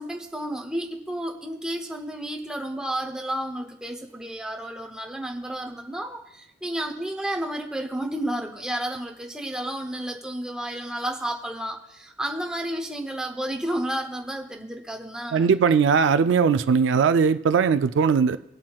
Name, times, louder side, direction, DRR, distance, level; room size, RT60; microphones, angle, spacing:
voice 1, 0.0-15.5, right 1 dB, 5° right, 0.7 m, -31 dB
voice 2, 15.3-18.4, right 6 dB, 75° right, 0.3 m, -19 dB
18.0 x 7.4 x 2.3 m
head